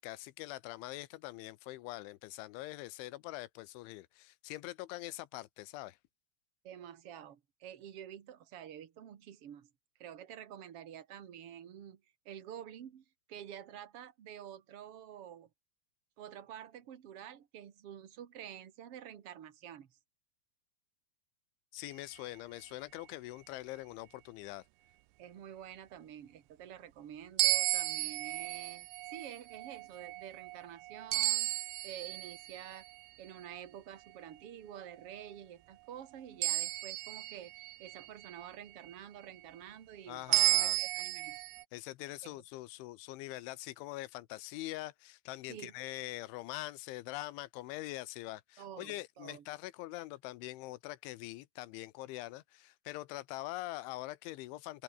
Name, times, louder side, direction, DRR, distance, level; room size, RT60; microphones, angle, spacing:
voice 1, 0.0-6.0 21.7-24.6 40.1-40.8 41.7-54.8, left 18 dB, 85° left, 3.4 m, -43 dB
voice 2, 6.6-9.7 10.0-15.5 16.2-20.0 25.2-32.8 33.2-37.5 37.8-41.4 42.2-42.4 45.5-45.7 48.6-49.4, right 10 dB, 60° right, 1.5 m, -49 dB
sound 1, 27.4-32.9 36.4-38.5 40.3-41.6, right 21 dB, 85° right, 2.5 m, -33 dB
open air
omnidirectional pair, 5.3 m